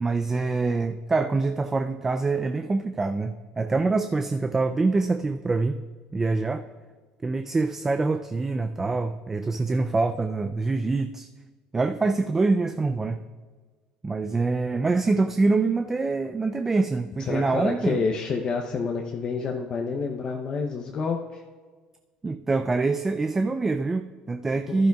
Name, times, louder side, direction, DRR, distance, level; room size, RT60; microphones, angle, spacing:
voice 1, 0.0-5.8 6.1-6.6 7.2-11.3 11.7-13.2 14.0-18.0 22.2-24.9, right 3 dB, 15° right, 8 dB, 0.3 m, -25 dB
voice 2, 17.3-21.4 24.7-24.8, left 5 dB, 40° left, 2 dB, 0.7 m, -28 dB
15.0 x 11.5 x 2.3 m, 1.5 s
cardioid pair, 135°, 2 cm